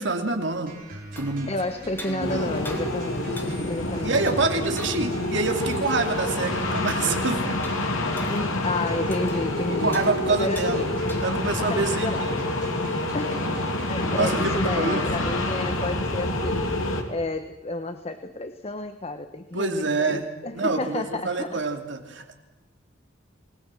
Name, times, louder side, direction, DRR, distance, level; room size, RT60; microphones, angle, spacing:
voice 1, 0.0-1.5 2.1-2.5 4.0-7.6 9.8-10.9 11.2-12.4 14.1-15.0 19.5-20.3 20.5-22.4, right 3 dB, 60° right, 5 dB, 2.7 m, -27 dB
sound 1, 0.7-15.7, equal, 45° right, 5.8 m, -42 dB
sound 2, 1.0-11.6, left 1 dB, 10° left, 2.8 m, -45 dB
voice 2, 1.5-4.2 8.3-10.9 11.6-12.4 13.1-16.7 17.1-21.6, left 2 dB, 30° left, 9 dB, 1.1 m, -31 dB
sound 3, 2.2-17.0, left 1 dB, 85° left, 3.3 m, -27 dB
27.5 x 20.0 x 7.7 m, 1.0 s
head